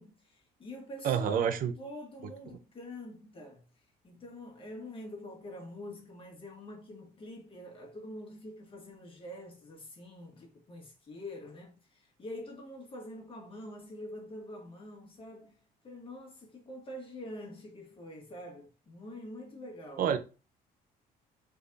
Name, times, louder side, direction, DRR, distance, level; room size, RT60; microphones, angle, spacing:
voice 1, 0.0-3.7 4.0-15.6 15.8-20.2, left 1 dB, 30° left, 1.4 m, -46 dB
voice 2, 1.0-1.7 20.0-20.2, right 8 dB, 55° right, 0.6 m, -27 dB
3.4 x 3.4 x 2.6 m
cardioid pair, 110°, 17 cm